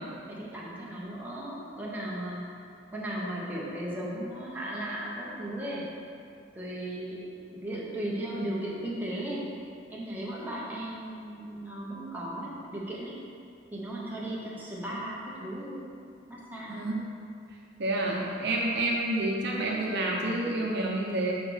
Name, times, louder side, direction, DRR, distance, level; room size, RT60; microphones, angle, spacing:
voice 1, 0.3-2.6 2.9-5.9 6.5-9.5 9.9-13.1 13.7-15.8 16.3-16.9, right 1 dB, 10° right, -6 dB, 1.0 m, -36 dB
voice 2, 17.8-21.3, right 1 dB, 60° right, -2 dB, 0.8 m, -29 dB
6.0 x 4.3 x 5.1 m, 2.4 s
head